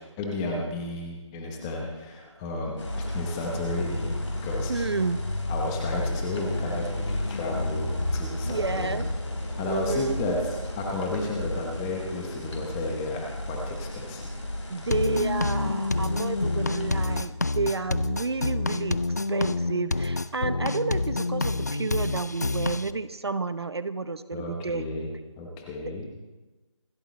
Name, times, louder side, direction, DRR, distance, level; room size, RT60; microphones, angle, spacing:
voice 1, 0.2-4.1 4.4-4.8 5.5-9.0 9.6-14.3 24.3-25.1 25.4-26.1, left 2 dB, 5° left, 0 dB, 0.9 m, -32 dB
sound 1, 2.8-17.2, left 1 dB, 65° left, 4.3 m, -33 dB
voice 2, 4.7-5.2 8.5-9.1 9.6-10.2 14.7-19.0 19.3-24.9 25.9-26.1, right 4 dB, 55° right, 13 dB, 0.8 m, -30 dB
sound 2, 14.9-22.9, left 2 dB, 35° left, 0.4 m, -28 dB
27.0 x 13.0 x 3.1 m, 1.2 s
figure-of-eight pair, 165°, 16 cm